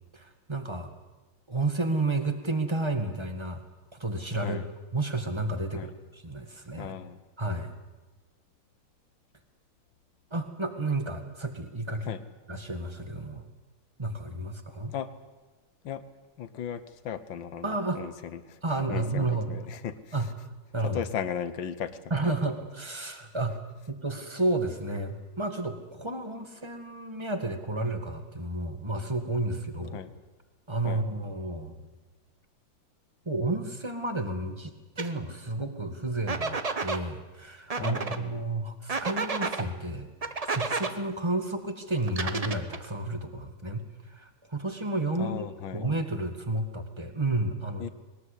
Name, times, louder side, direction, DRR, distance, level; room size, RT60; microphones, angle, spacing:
voice 1, 0.1-0.9 1.5-3.6 3.9-4.6 4.9-6.9 7.4-7.7 10.3-12.1 12.5-13.5 14.0-14.9 17.6-18.0 18.6-19.5 20.1-20.3 20.7-21.0 22.1-23.6 23.9-30.0 30.7-31.9 33.2-40.1 40.4-45.5 45.7-47.8, right 2 dB, 15° right, 7 dB, 1.7 m, -31 dB
voice 2, 6.8-7.2 12.1-12.2 14.9-15.1 15.8-16.1 16.4-18.6 18.9-20.3 20.8-22.4 29.9-30.1 30.8-31.0 37.8-38.4 45.2-45.8 47.8-47.9, left 8 dB, 65° left, 13 dB, 1.7 m, -36 dB
sound 1, 35.0-35.1 36.3-37.0 37.7-38.2 38.9-39.6 40.2-40.9 42.1-42.9, right 4 dB, 45° right, 0.4 m, -31 dB
21.0 x 19.5 x 8.4 m, 1.2 s
omnidirectional pair, 2.3 m